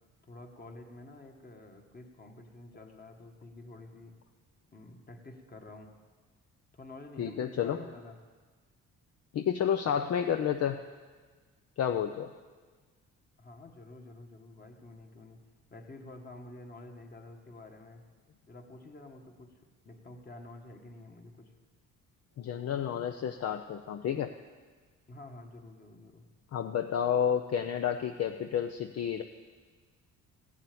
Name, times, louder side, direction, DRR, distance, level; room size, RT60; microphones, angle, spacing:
voice 1, 0.3-4.2 4.7-6.0 6.7-8.2 13.4-15.4 15.7-18.0 18.5-21.5 25.1-26.3, left 2 dB, 30° left, 4 dB, 1.8 m, -49 dB
voice 2, 7.2-7.8 9.3-10.8 11.8-12.3 22.4-24.3 26.5-29.2, left 8 dB, 55° left, 7 dB, 0.7 m, -30 dB
15.5 x 7.4 x 8.5 m, 1.5 s
cardioid pair, 90°, 30 cm